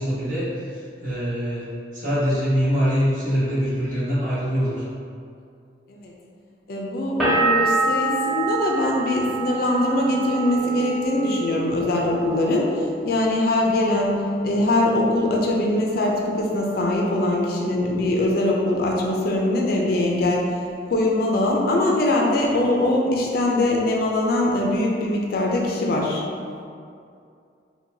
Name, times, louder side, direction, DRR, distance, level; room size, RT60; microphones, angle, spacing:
voice 1, 0.0-1.7 1.9-4.8, equal, 45° right, -11 dB, 1.3 m, -24 dB
voice 2, 6.7-12.7 13.0-20.5 20.9-26.2, left 1 dB, 55° left, -1 dB, 0.4 m, -22 dB
sound 1, 7.2-12.8 13.1-13.9, right 3 dB, ahead, 0.7 m, -26 dB
4.5 x 2.3 x 2.6 m, 2.4 s
head